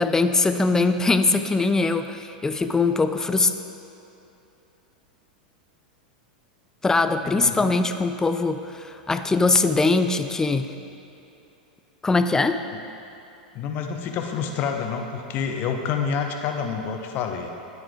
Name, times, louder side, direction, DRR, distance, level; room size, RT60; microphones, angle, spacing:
voice 1, 0.0-3.5 6.8-10.7 12.0-12.6, left 3 dB, 10° left, 9 dB, 0.5 m, -21 dB
voice 2, 7.2-7.8 13.5-17.5, left 6 dB, 45° left, 4 dB, 1.2 m, -28 dB
12.5 x 9.6 x 3.7 m, 2.8 s
hypercardioid pair, 100°, 5 cm